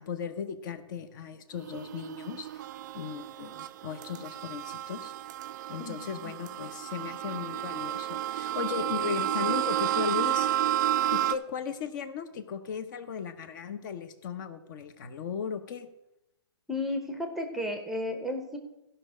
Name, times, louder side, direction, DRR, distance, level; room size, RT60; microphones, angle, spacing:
voice 1, 0.0-2.7 2.9-5.1 5.7-10.5 11.1-15.9, left 7 dB, 45° left, 10 dB, 0.9 m, -36 dB
sound 1, 1.6-11.3, right 12 dB, 40° right, 0.5 m, -31 dB
voice 2, 16.7-18.6, left 1 dB, ahead, 5 dB, 0.7 m, -33 dB
14.5 x 5.5 x 5.0 m, 0.94 s
hypercardioid pair, 140°, 15 cm